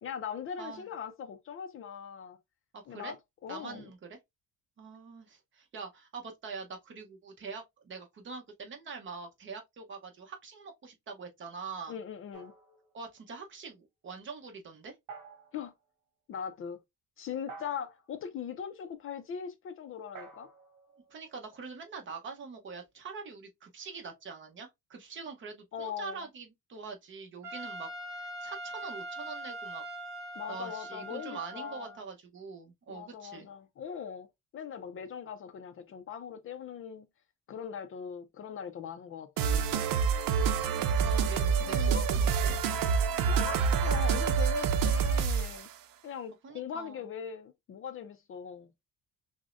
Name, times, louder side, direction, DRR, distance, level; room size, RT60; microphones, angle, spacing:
voice 1, 0.0-2.4 2.9-3.2 3.4-3.9 11.9-12.5 15.5-15.7 16.3-16.8 17.2-20.5 25.7-26.3 30.4-31.9 32.9-34.3 34.5-37.1 37.5-39.9 41.6-42.0 43.2-45.7 46.0-48.7, left 8 dB, 40° left, 0.4 m, -40 dB
voice 2, 2.7-3.1 3.5-4.2 4.8-12.0 12.9-15.0 21.1-29.8 30.5-33.5 40.6-42.6 46.4-47.0, right 5 dB, 35° right, 0.8 m, -44 dB
sound 1, 12.3-13.4 15.1-15.7 17.5-18.1 20.1-21.9, right 4 dB, 65° right, 1.2 m, -51 dB
Trumpet, 27.4-32.0, right 1 dB, 10° right, 2.7 m, -42 dB
sound 2, 39.4-45.7, right 6 dB, 85° right, 0.6 m, -27 dB
6.0 x 2.1 x 2.4 m
cardioid pair, 175°, 33 cm